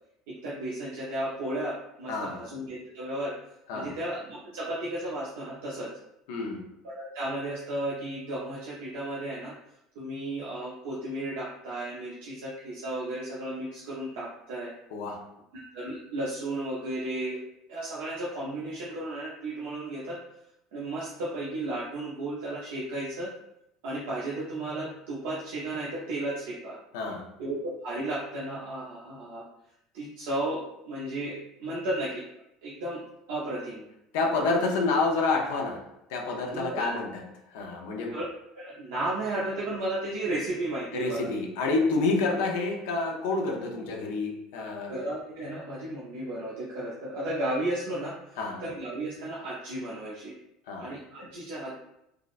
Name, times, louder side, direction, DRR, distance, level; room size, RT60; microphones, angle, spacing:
voice 1, 0.3-3.4 3.7-5.9 6.8-9.5 9.9-14.7 15.5-17.4 17.7-20.2 20.7-23.3 23.8-26.8 27.4-29.4 29.9-32.2 32.6-33.0 33.3-33.8 36.4-36.9 38.1-38.2 38.5-41.3 44.5-44.6 44.9-50.3 50.8-51.8, right 1 dB, 85° right, -6 dB, 0.7 m, -34 dB
voice 2, 2.1-2.4 3.7-4.0 6.3-6.7 14.9-15.3 26.9-27.3 34.1-37.1 37.5-38.2 40.9-44.9 48.4-48.6 50.7-51.0, left 3 dB, 85° left, 1 dB, 0.5 m, -28 dB
3.6 x 2.0 x 2.4 m, 0.83 s
supercardioid pair, 110°, 0 cm